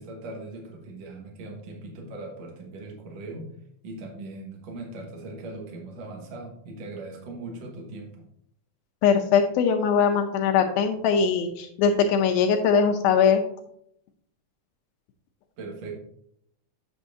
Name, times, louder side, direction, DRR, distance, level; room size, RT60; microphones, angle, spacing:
voice 1, 0.0-3.5 3.8-8.2 15.6-15.9, right 2 dB, 55° right, 1 dB, 2.2 m, -39 dB
voice 2, 9.0-13.4, left 6 dB, 80° left, 4 dB, 2.3 m, -21 dB
8.6 x 7.1 x 2.7 m, 0.70 s
omnidirectional pair, 4.5 m